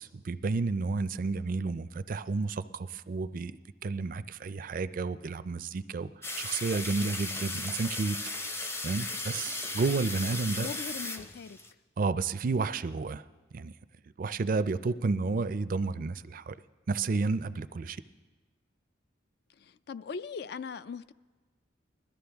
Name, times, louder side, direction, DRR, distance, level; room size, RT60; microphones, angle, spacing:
voice 1, 0.0-3.6 3.8-6.1 6.4-8.2 8.8-10.7 12.0-13.2 13.5-13.7 14.2-16.6 16.9-18.0, right 4 dB, 45° right, 0.4 m, -31 dB
sound 1, 6.2-11.7, left 2 dB, 15° left, 0.6 m, -36 dB
voice 2, 10.6-11.6 19.6-21.1, left 5 dB, 60° left, 0.4 m, -40 dB
21.0 x 13.0 x 3.5 m
head